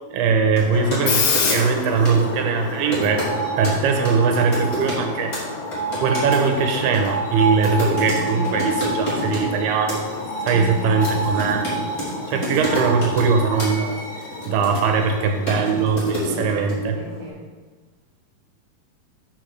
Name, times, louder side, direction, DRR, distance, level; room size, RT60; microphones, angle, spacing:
voice 1, 0.1-3.3 3.6-5.4 6.0-10.1 10.5-11.7 12.3-17.0, right 5 dB, 80° right, 4 dB, 2.7 m, -21 dB
sound 1, 0.6-1.0 1.3-1.8 2.0-2.2 2.9-3.3 3.6-3.8 4.0-5.1 5.3-5.4 5.7-9.5 9.9-10.2 10.5-12.1 12.4-13.3 13.6-13.7 14.2-15.1 15.5-16.7, equal, 25° left, 2.8 m, -29 dB
Screech, 0.7-17.3, left 1 dB, 70° left, 2.7 m, -28 dB
voice 2, 8.3-8.6 10.5-11.0 12.3-12.5 16.7-17.4, left 1 dB, 20° right, -7 dB, 1.3 m, -36 dB
6.3 x 6.1 x 6.4 m, 1.4 s
omnidirectional pair, 4.6 m